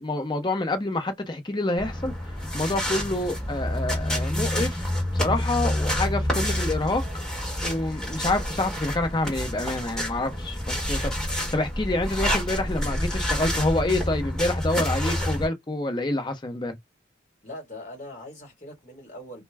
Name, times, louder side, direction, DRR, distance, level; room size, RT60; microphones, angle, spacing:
voice 1, 0.0-2.1 2.5-4.9 5.1-16.8, left 2 dB, 25° left, 0.6 m, -27 dB
sound 1, 1.8-15.5, left 1 dB, 5° left, 1.1 m, -28 dB
voice 2, 17.4-19.4, left 1 dB, 40° left, 1.3 m, -41 dB
2.2 x 2.1 x 3.3 m
head